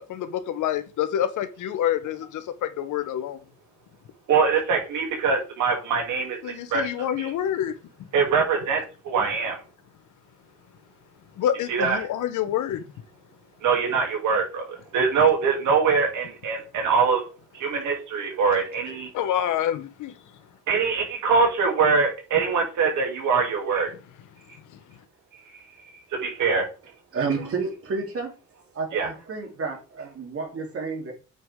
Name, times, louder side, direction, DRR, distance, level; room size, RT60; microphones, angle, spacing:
voice 1, 0.0-3.4 6.4-7.7 11.4-12.8 19.1-20.1, left 10 dB, 80° left, 1.1 m, -27 dB
voice 2, 4.3-6.9 7.2-7.3 8.1-9.6 11.7-12.0 13.6-17.2 17.5-19.1 20.7-23.9 26.1-26.7 28.9-29.1, right 5 dB, 80° right, 3.0 m, -23 dB
voice 3, 27.1-28.3 28.7-31.1, right 4 dB, 50° right, 3.3 m, -30 dB
8.7 x 6.1 x 3.7 m
cardioid pair, 90°, 30 cm